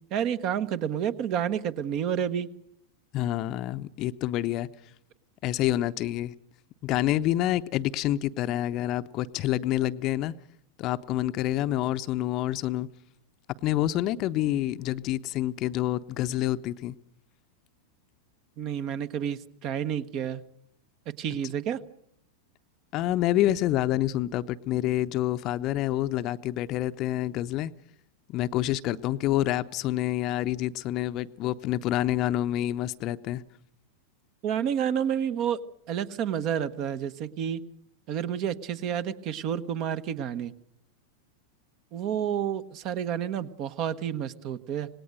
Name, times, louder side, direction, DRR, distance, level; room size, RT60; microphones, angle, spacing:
voice 1, 0.1-2.5 18.6-20.4 21.2-21.8 34.4-35.6 35.9-37.6 38.1-40.5 41.9-44.9, right 9 dB, 40° right, 13 dB, 1.1 m, -30 dB
voice 2, 3.1-4.7 5.4-6.3 6.8-10.3 10.8-12.9 13.6-16.9 21.4-21.5 22.9-27.7 28.3-33.4, left 14 dB, 40° left, 12 dB, 0.8 m, -27 dB
26.5 x 19.5 x 6.6 m, 0.72 s
figure-of-eight pair, 90°, 0 cm